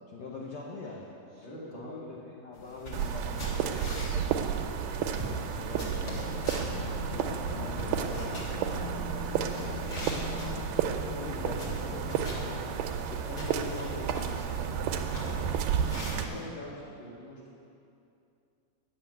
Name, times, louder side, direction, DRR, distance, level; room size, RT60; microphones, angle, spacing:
voice 1, 0.1-4.5 4.9-9.3 9.7-12.0 12.3-12.6 12.9-15.5 16.1-16.5, left 3 dB, 70° left, -3 dB, 1.8 m, -44 dB
voice 2, 1.4-2.1 11.3-12.1 16.2-17.6, equal, 20° left, -4 dB, 1.4 m, -44 dB
sound 1, 2.6-16.4, equal, 35° left, 1.7 m, -43 dB
sound 2, 2.9-16.2, right 8 dB, 80° right, 2.2 m, -32 dB
sound 3, 6.0-13.0, left 5 dB, 85° left, 1.7 m, -41 dB
9.4 x 7.0 x 9.0 m, 2.6 s
omnidirectional pair, 4.0 m